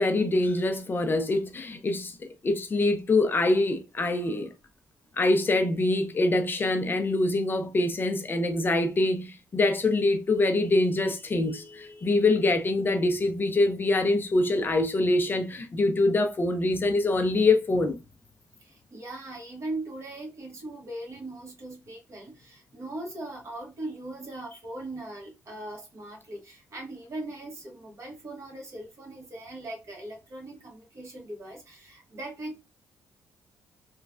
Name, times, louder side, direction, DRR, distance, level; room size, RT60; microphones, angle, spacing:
voice 1, 0.0-4.5 5.2-17.9, left 2 dB, 35° left, 0.5 m, -24 dB
voice 2, 18.6-32.6, right 2 dB, 50° right, 1.3 m, -39 dB
3.1 x 2.3 x 2.4 m
cardioid pair, 85°, 6 cm